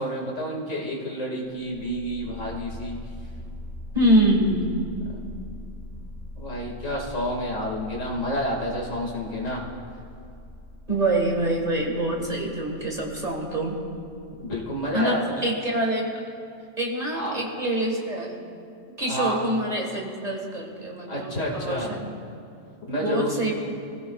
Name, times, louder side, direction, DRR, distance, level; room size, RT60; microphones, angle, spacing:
voice 1, 0.0-3.0 6.4-9.6 14.4-15.4 17.1-17.4 19.0-19.4 21.1-21.9 22.9-23.5, equal, 75° left, -2 dB, 2.6 m, -29 dB
sound 1, 1.6-15.0, left 1 dB, 10° left, 3.6 m, -42 dB
voice 2, 3.9-4.7 10.9-13.8 14.9-16.1 16.8-18.3 19.0-22.1 23.0-23.6, right 1 dB, 30° right, -1 dB, 1.9 m, -25 dB
26.0 x 16.0 x 2.4 m, 2.5 s
omnidirectional pair, 1.3 m